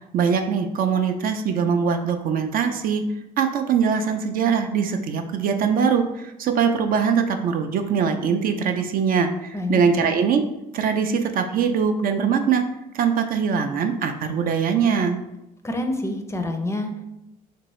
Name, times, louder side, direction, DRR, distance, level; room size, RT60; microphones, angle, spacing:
voice 1, 0.1-3.0 3.4-10.4 10.7-12.7 12.9-15.2, right 6 dB, 60° right, 6 dB, 0.4 m, -22 dB
voice 2, 9.5-10.1 15.6-17.0, left 2 dB, 15° left, 5 dB, 0.4 m, -27 dB
2.9 x 2.6 x 3.1 m, 0.89 s
supercardioid pair, 65°, 17 cm